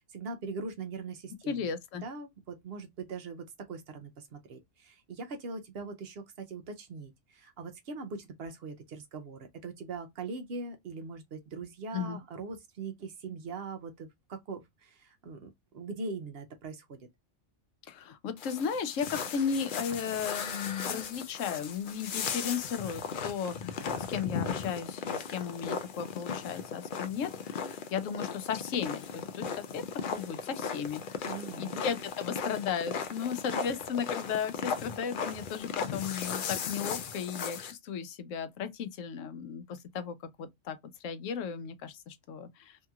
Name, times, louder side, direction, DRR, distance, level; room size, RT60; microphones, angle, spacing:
voice 1, 0.1-1.7 2.0-17.0 31.2-31.8, right 4 dB, 60° right, 0.8 m, -41 dB
voice 2, 1.5-2.0 11.9-12.2 17.9-42.8, left 7 dB, 90° left, 1.0 m, -35 dB
sound 1, 18.4-37.7, left 6 dB, 60° left, 0.5 m, -37 dB
2.8 x 2.7 x 2.2 m
omnidirectional pair, 1.3 m